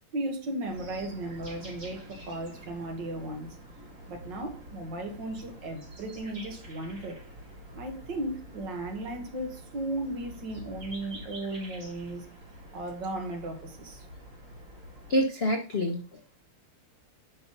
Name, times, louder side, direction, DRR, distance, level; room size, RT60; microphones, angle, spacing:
voice 1, 0.1-3.6 4.1-7.2 7.7-12.3 12.7-14.1, right 1 dB, 60° right, 2.2 m, -36 dB
sound 1, 0.7-15.2, right 1 dB, 35° right, 3.7 m, -47 dB
voice 2, 15.1-16.4, equal, 70° left, 0.6 m, -28 dB
9.3 x 5.8 x 3.9 m
omnidirectional pair, 2.3 m